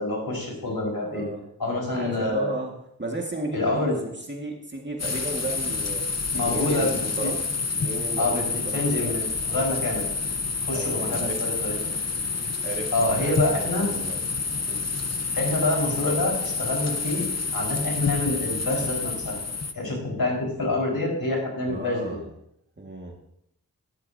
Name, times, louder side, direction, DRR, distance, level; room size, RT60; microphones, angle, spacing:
voice 1, 0.0-1.2 1.6-2.5 3.5-4.0 6.3-7.3 8.2-8.4 8.7-10.0 10.6-11.8 12.9-13.9 15.4-19.4 19.7-22.2, left 2 dB, 75° left, -2 dB, 4.8 m, -27 dB
voice 2, 1.0-1.4 1.9-2.7 3.0-6.0 6.4-7.4 7.7-9.1 9.5-9.7 10.7-11.4 12.6-14.2 14.7-14.8 21.7-22.2 22.8-23.2, right 2 dB, 30° right, 0 dB, 1.9 m, -34 dB
sound 1, 5.0-19.7, left 4 dB, 45° left, 1.0 m, -29 dB
15.0 x 11.5 x 2.8 m, 0.75 s
wide cardioid pair, 55°, 37 cm